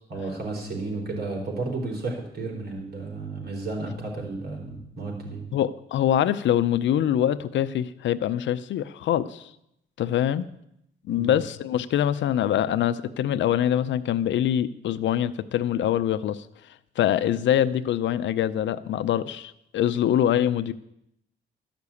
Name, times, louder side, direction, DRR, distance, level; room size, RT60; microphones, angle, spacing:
voice 1, 0.1-5.5 11.1-11.4, right 3 dB, 55° right, 0 dB, 4.0 m, -32 dB
voice 2, 5.5-9.5 10.0-10.5 11.1-16.5 17.0-20.7, left 10 dB, 70° left, 14 dB, 0.6 m, -24 dB
13.0 x 6.0 x 8.4 m, 0.79 s
cardioid pair, 90°, 20 cm